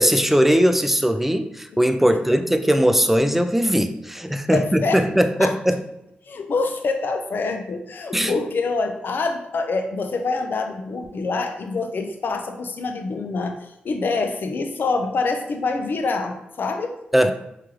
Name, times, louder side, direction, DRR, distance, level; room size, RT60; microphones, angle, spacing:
voice 1, 0.0-5.8 8.1-8.3 17.1-17.3, equal, 5° right, 8 dB, 0.4 m, -19 dB
voice 2, 4.5-5.1 5.4-5.5 6.3-17.3, left 3 dB, 65° left, 5 dB, 0.5 m, -26 dB
4.6 x 2.4 x 3.0 m, 0.82 s
cardioid pair, 50°, 4 cm